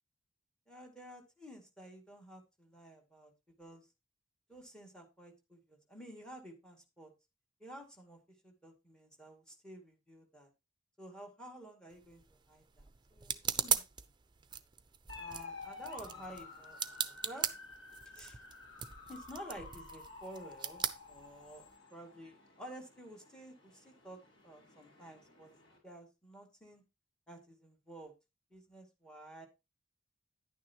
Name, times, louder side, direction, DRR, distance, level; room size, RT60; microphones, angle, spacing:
voice 1, 0.7-3.3 3.6-3.8 4.5-7.1 7.6-10.5 11.0-14.1 15.1-17.5 18.1-18.4 19.1-25.5 25.8-26.8 27.3-28.1 28.5-29.5, right 1 dB, 5° left, 3 dB, 2.3 m, -52 dB
sound 1, 11.9-21.8, right 8 dB, 25° right, 0.6 m, -40 dB
sound 2, 15.1-25.8, left 4 dB, 80° left, 6.0 m, -52 dB
11.0 x 9.5 x 3.0 m, 0.25 s
head